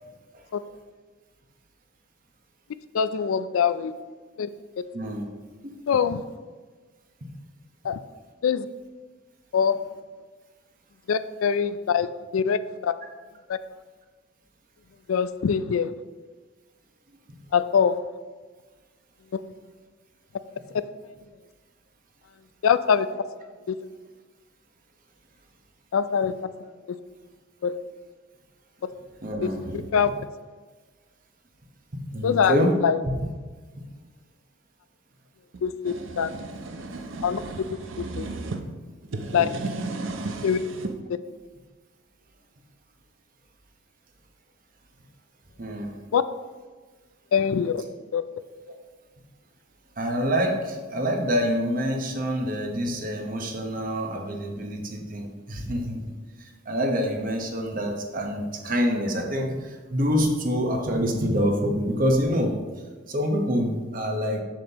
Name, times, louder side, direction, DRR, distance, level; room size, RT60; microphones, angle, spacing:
voice 1, 0.0-0.4 4.9-5.3 5.6-5.9 7.2-7.3 17.3-17.4 29.2-29.9 31.9-32.7 33.0-33.1 33.8-33.9 45.6-45.9 50.0-56.0 56.4-62.6 63.1-64.4, equal, 40° right, 2 dB, 1.0 m, -26 dB
voice 2, 2.9-3.9 4.4-4.5 5.9-6.2 7.8-8.0 8.4-8.7 9.5-9.8 11.1-12.9 13.5-13.6 15.1-15.9 17.5-18.0 19.3-19.4 22.6-23.2 23.7-23.8 25.9-26.3 27.6-27.7 29.4-29.5 29.9-30.1 32.2-32.6 32.8-33.0 35.6-36.3 37.2-37.4 38.2-38.3 39.3-39.5 40.4-40.6 41.1-41.2 46.1-46.2 47.3-47.8 48.1-48.2, left 7 dB, 85° left, 13 dB, 0.4 m, -23 dB
sound 1, 35.5-38.6 39.0-41.0, right 3 dB, 70° right, 0.6 m, -34 dB
7.3 x 7.3 x 2.9 m, 1.4 s
head